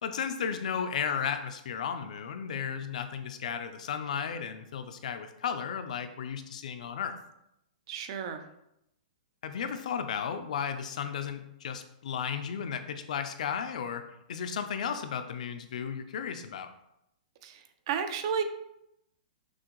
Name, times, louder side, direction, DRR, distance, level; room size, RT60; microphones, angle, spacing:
voice 1, 0.0-7.2 9.4-14.0 14.3-16.7, left 7 dB, 55° left, 9 dB, 0.4 m, -34 dB
voice 2, 7.9-8.4 17.4-18.4, right 7 dB, 30° right, 8 dB, 0.3 m, -32 dB
6.1 x 2.5 x 3.0 m, 0.82 s
hypercardioid pair, 175°, 5 cm